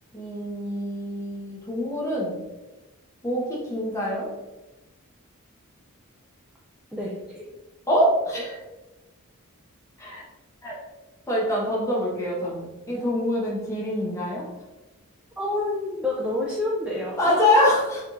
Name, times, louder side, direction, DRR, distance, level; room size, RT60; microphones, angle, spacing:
voice 1, 0.1-2.3 3.2-4.3 7.9-8.6 10.0-10.2 10.6-10.8 11.3-14.5 17.2-18.0, left 1 dB, 15° left, -5 dB, 1.1 m, -25 dB
voice 2, 6.9-7.4 15.4-17.7, left 1 dB, 5° right, -4 dB, 0.4 m, -28 dB
4.3 x 3.5 x 2.5 m, 1.1 s
head